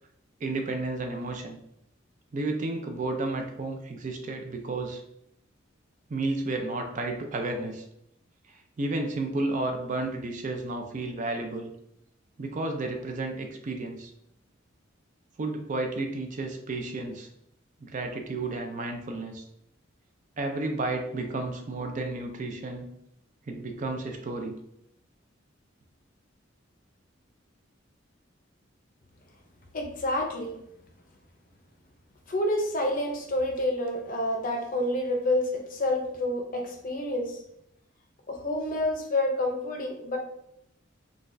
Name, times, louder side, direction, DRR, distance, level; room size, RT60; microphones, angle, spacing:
voice 1, 0.4-1.6 2.3-5.0 6.1-7.8 8.8-11.7 12.4-14.1 15.4-17.3 17.8-19.4 20.4-22.9 23.5-24.5, right 2 dB, 40° right, 4 dB, 0.4 m, -32 dB
voice 2, 29.7-30.5 32.3-37.4 38.3-40.2, left 1 dB, 45° left, 2 dB, 0.6 m, -28 dB
3.9 x 2.3 x 2.5 m, 0.77 s
head